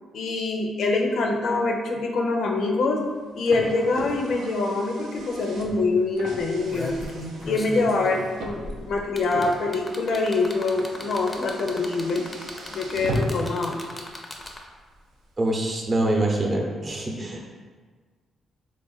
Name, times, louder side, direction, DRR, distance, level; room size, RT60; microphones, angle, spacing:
voice 1, 0.1-3.0 3.3-7.0 7.4-12.2 12.7-13.8, left 3 dB, 70° left, 1 dB, 0.5 m, -25 dB
Car, 3.0-13.6, right 1 dB, 85° right, 0.5 m, -37 dB
sound 1, 5.2-5.3 5.6-5.8 6.4-14.8 16.0-16.1, left 1 dB, 20° left, 0.5 m, -37 dB
voice 2, 15.4-17.5, right 1 dB, 35° right, -1 dB, 0.7 m, -25 dB
3.5 x 2.4 x 3.9 m, 1.5 s
cardioid pair, 100°, 0 cm